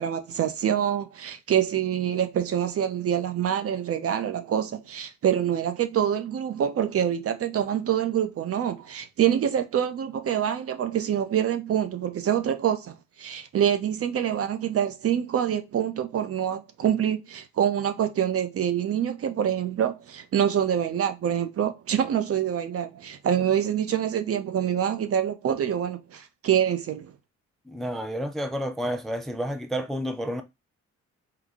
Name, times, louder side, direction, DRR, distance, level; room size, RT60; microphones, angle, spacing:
voice 1, 0.0-27.1, right 9 dB, 50° right, 0.6 m, -26 dB
voice 2, 27.7-30.4, equal, ahead, 0.4 m, -30 dB
3.9 x 2.2 x 3.5 m
cardioid pair, 90°, 30 cm